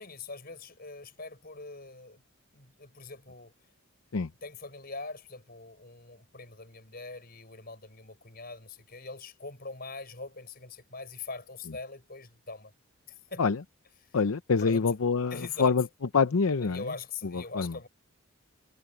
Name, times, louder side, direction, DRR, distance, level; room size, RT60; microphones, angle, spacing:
voice 1, 0.0-2.2 2.5-3.5 4.4-12.7 13.1-13.5 14.6-14.8 15.3-15.7 16.6-17.9, left 3 dB, 45° left, 5.9 m, -42 dB
voice 2, 14.1-15.8 16.1-16.8 17.3-17.8, left 5 dB, 75° left, 0.6 m, -26 dB
head